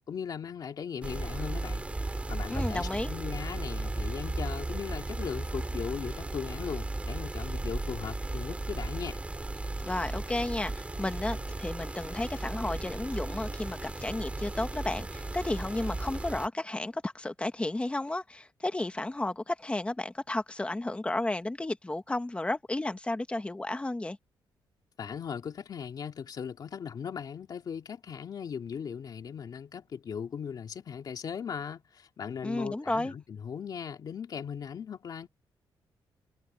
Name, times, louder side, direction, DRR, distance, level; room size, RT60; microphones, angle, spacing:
voice 1, 0.0-1.8 2.1-9.2 25.0-35.3, left 7 dB, 50° left, 2.6 m, -38 dB
sound 1, 1.0-16.5, right 2 dB, 15° right, 4.6 m, -35 dB
voice 2, 2.5-3.1 9.8-24.2 32.4-33.1, left 2 dB, 15° left, 1.4 m, -33 dB
wide cardioid pair, 140°, 8 cm